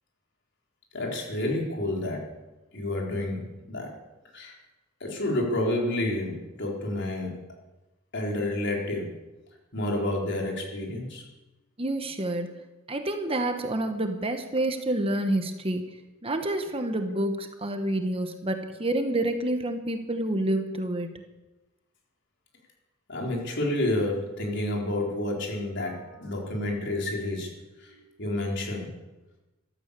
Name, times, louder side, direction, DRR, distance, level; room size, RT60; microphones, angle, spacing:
voice 1, 0.9-2.3 2.7-4.0 4.3-4.5 5.0-7.4 8.1-9.2 9.7-11.2 23.1-27.5 27.8-28.9, left 1 dB, 60° left, -1 dB, 4.3 m, -30 dB
voice 2, 11.8-12.5 12.9-21.2, right 1 dB, 30° right, 6 dB, 1.2 m, -28 dB
15.5 x 13.0 x 6.9 m, 1.1 s
head